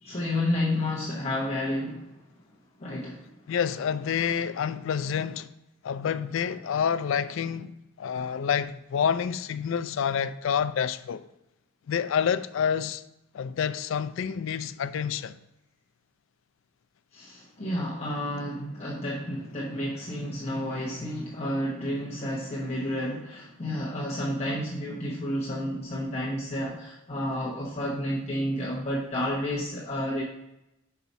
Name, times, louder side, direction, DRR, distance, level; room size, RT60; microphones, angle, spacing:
voice 1, 0.0-2.1 2.8-3.3 17.1-30.2, left 1 dB, 30° left, 1.0 m, -31 dB
voice 2, 3.5-5.5 5.8-11.2 11.9-13.0 13.3-15.4, left 7 dB, 65° left, 0.3 m, -28 dB
5.7 x 4.7 x 4.0 m
head